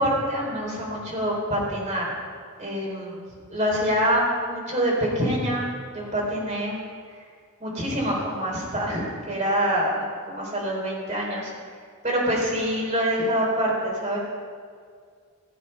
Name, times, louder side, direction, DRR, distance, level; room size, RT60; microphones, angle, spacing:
voice 1, 0.0-2.1 2.6-5.7 5.9-6.8 7.6-11.5 12.0-14.2, equal, 35° right, -3 dB, 4.0 m, -25 dB
16.5 x 7.6 x 5.6 m, 2.1 s
head